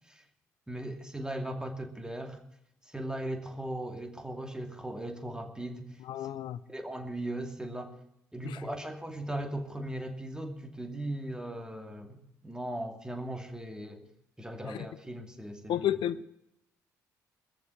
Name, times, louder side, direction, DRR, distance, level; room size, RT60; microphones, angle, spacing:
voice 1, 0.7-2.4 2.9-6.3 6.7-8.0 8.3-14.1 14.4-15.9, right 1 dB, 10° right, 5 dB, 2.6 m, -38 dB
voice 2, 6.1-6.6 8.4-8.6 14.6-14.9 15.7-16.2, left 11 dB, 70° left, 15 dB, 0.7 m, -31 dB
21.0 x 7.0 x 8.4 m, 0.82 s
hypercardioid pair, 50°, 8 cm